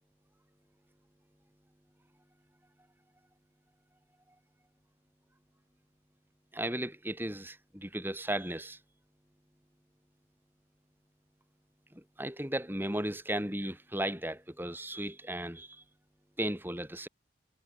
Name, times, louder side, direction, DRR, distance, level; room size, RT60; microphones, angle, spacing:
voice 1, 6.5-8.8 11.9-15.8 16.4-17.1, right 1 dB, 10° right, 5.8 m, -35 dB
head